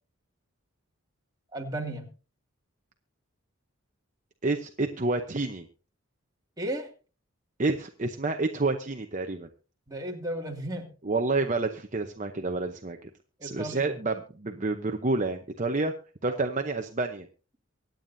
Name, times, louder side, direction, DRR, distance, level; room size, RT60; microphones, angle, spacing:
voice 1, 1.5-2.1 6.6-6.9 9.9-10.9 13.4-14.0 16.3-16.5, right 1 dB, 15° right, 0 dB, 2.3 m, -34 dB
voice 2, 4.4-5.6 7.6-9.5 11.0-13.1 13.4-15.9 16.2-17.3, right 3 dB, 35° right, 5 dB, 0.8 m, -29 dB
24.5 x 9.2 x 2.7 m, 0.35 s
head